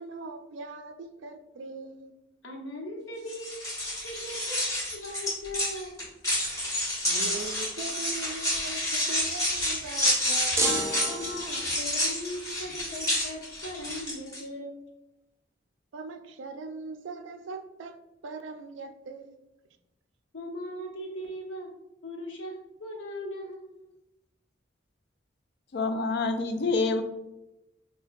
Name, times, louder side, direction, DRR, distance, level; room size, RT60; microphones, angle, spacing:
voice 1, 0.0-2.1 7.1-10.7 15.9-19.4, right 3 dB, 75° right, 0.4 m, -40 dB
voice 2, 2.4-6.0 11.1-14.8 20.3-21.7 22.0-23.9, left 1 dB, 75° left, 1.0 m, -39 dB
sound 1, 3.3-14.4, left 1 dB, 20° left, 1.3 m, -29 dB
sound 2, 10.6-11.9, right 2 dB, 15° right, 0.5 m, -29 dB
voice 3, 25.7-27.0, left 3 dB, 60° left, 0.4 m, -27 dB
5.8 x 2.2 x 2.6 m
head